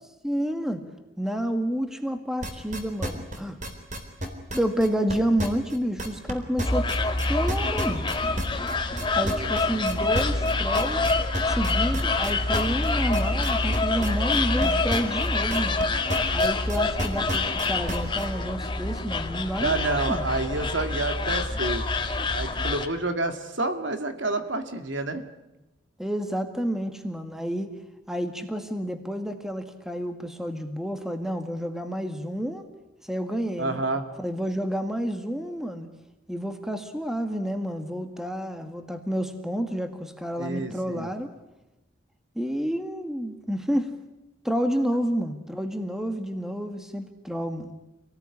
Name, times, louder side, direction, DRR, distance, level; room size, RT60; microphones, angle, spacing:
voice 1, 0.2-0.8 1.2-3.6 4.5-6.9 7.3-8.0 9.1-11.0 11.4-15.8 16.3-20.2 26.0-27.7 28.1-32.6 33.0-33.8 34.2-35.9 36.3-41.3 42.4-43.9 44.4-47.7, equal, ahead, 7 dB, 1.8 m, -29 dB
sound 1, 2.4-6.3 6.6-15.8 16.1-18.2, right 1 dB, 40° right, 3.8 m, -31 dB
sound 2, 6.7-22.9, left 3 dB, 25° left, 1.7 m, -26 dB
voice 2, 19.6-21.8 22.3-25.2 33.6-34.0 40.4-41.1, right 2 dB, 70° right, 7 dB, 2.3 m, -28 dB
27.5 x 18.5 x 10.0 m, 0.98 s
head